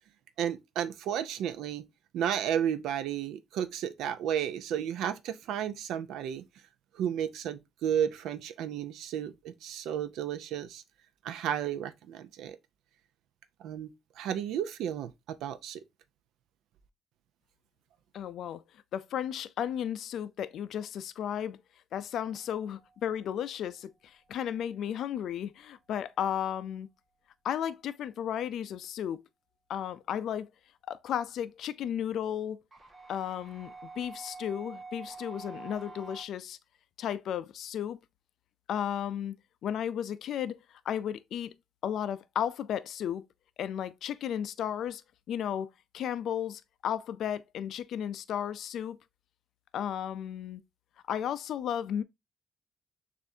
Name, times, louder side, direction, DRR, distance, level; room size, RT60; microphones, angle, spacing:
voice 1, 0.4-1.8 2.1-6.5 6.9-10.8 11.2-12.6 13.6-13.9 14.2-15.8, right 9 dB, 85° right, 0.5 m, -33 dB
voice 2, 18.1-18.6 18.9-21.6 21.9-26.9 27.4-29.2 29.7-30.5 30.9-32.6 33.1-36.6 37.0-38.0 38.7-39.3 39.6-41.5 41.8-43.3 43.6-45.0 45.3-45.7 45.9-49.0 49.7-50.6 51.1-52.0, left 9 dB, 75° left, 0.3 m, -34 dB
sound 1, 22.3-23.1 32.7-36.2, right 4 dB, 25° right, 1.6 m, -47 dB
6.8 x 2.5 x 2.6 m
cardioid pair, 90°, 0 cm